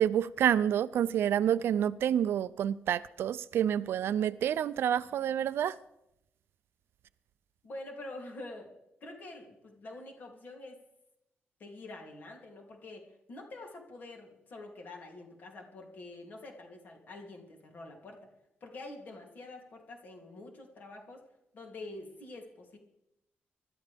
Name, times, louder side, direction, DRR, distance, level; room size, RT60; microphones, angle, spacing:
voice 1, 0.0-5.7, right 10 dB, 70° right, 0.5 m, -28 dB
voice 2, 7.6-8.7 9.0-10.8 11.6-18.3 18.6-21.2 21.5-22.8, left 2 dB, 45° left, 2.9 m, -46 dB
25.0 x 12.5 x 3.5 m
wide cardioid pair, 175°, 4 cm